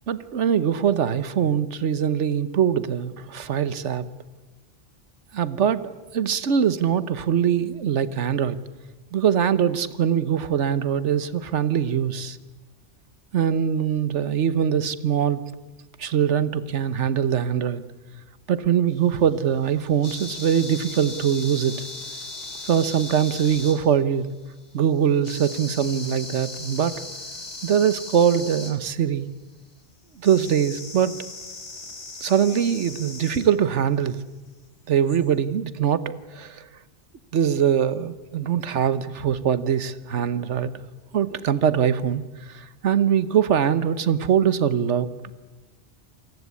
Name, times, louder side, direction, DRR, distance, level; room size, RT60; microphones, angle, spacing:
voice 1, 0.1-4.0 5.3-8.6 9.1-12.4 13.3-15.4 16.0-17.8 18.5-21.7 22.6-24.3 24.7-27.0 27.6-29.3 30.2-31.1 32.2-34.2 34.9-36.6 37.3-40.7 41.1-45.1, right 8 dB, 85° right, 15 dB, 1.3 m, -22 dB
sound 1, 18.9-24.2 25.2-28.7 30.2-33.5 35.1-35.2, left 2 dB, 70° left, 3.6 m, -38 dB
28.0 x 19.0 x 8.4 m, 1.2 s
omnidirectional pair, 1.2 m